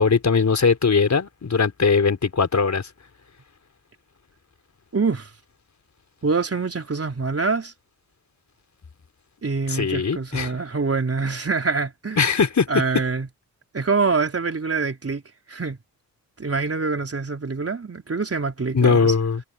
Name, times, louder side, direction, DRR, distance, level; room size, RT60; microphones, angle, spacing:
voice 1, 0.0-2.9 9.7-10.5 12.2-12.7 18.7-19.4, left 5 dB, 45° left, 4.3 m, -20 dB
voice 2, 4.9-5.3 6.2-7.7 9.4-12.3 12.7-13.3 13.7-15.2 15.5-15.8 16.4-19.1, right 4 dB, 35° right, 3.9 m, -25 dB
supercardioid pair, 50°, 40 cm